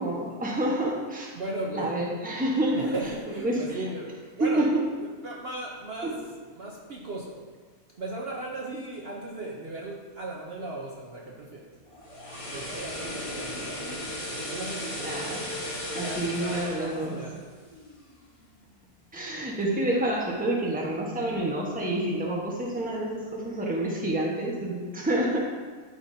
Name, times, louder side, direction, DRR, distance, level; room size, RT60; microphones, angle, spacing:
voice 1, 0.0-1.3 1.7-2.9 3.3-3.8 4.6-4.8 6.0-6.1 14.9-15.4 15.9-17.2 19.1-25.4, right 1 dB, 5° right, -3 dB, 1.0 m, -28 dB
voice 2, 1.3-2.0 2.7-4.1 4.4-4.7 5.2-6.2 6.5-7.4 8.0-11.6 12.5-13.9 14.3-15.5 15.9-17.3, right 2 dB, 50° right, -2 dB, 0.9 m, -36 dB
sound 1, 11.9-18.1 18.4-18.6, left 1 dB, 25° left, 1.2 m, -36 dB
11.5 x 5.0 x 2.7 m, 1.4 s
omnidirectional pair, 1.5 m